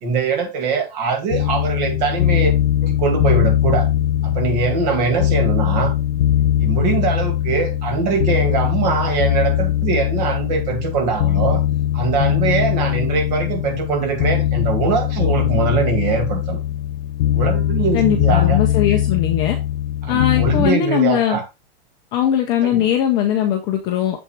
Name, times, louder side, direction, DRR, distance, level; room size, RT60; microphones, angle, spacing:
voice 1, 0.0-2.5 2.8-3.9 4.2-5.9 6.6-11.6 11.9-16.6 17.3-18.6 20.0-21.4 22.6-22.8, right 5 dB, 45° right, 2.2 m, -22 dB
sound 1, 1.3-20.7, left 12 dB, 80° left, 0.5 m, -20 dB
voice 2, 17.9-19.6 20.1-21.4 22.1-24.2, left 10 dB, 15° left, 0.4 m, -19 dB
6.9 x 6.0 x 3.2 m
supercardioid pair, 165°, 30 cm